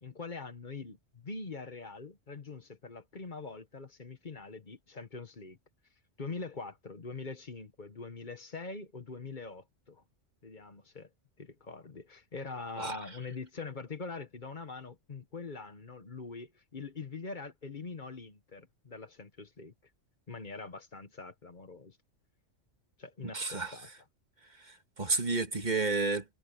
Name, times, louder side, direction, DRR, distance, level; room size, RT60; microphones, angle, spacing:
voice 1, 0.0-5.6 6.2-10.0 10.4-11.1 11.4-19.7 20.3-22.0 23.0-23.9, left 4 dB, 40° left, 1.3 m, -43 dB
voice 2, 23.3-23.8 24.6-26.2, right 3 dB, 35° right, 1.8 m, -31 dB
omnidirectional pair, 1.3 m